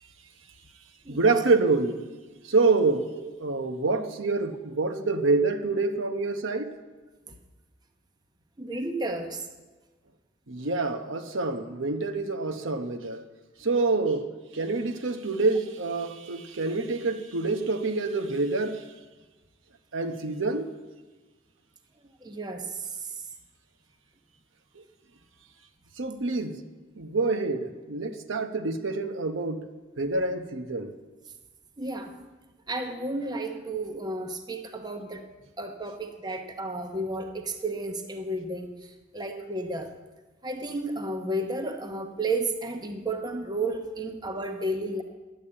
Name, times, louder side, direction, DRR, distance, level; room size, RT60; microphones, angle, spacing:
voice 1, 1.1-2.0 2.5-6.7 10.5-13.2 13.6-18.8 19.9-20.7 26.0-26.5 27.0-29.7 30.0-30.9, right 3 dB, 80° right, 7 dB, 0.9 m, -27 dB
voice 2, 8.6-9.4 16.5-16.6 22.2-23.1 31.8-32.2 32.7-35.3 35.6-38.7 39.1-39.9 40.4-45.0, right 2 dB, 20° right, 5 dB, 0.8 m, -32 dB
10.5 x 8.5 x 8.6 m, 1.3 s
head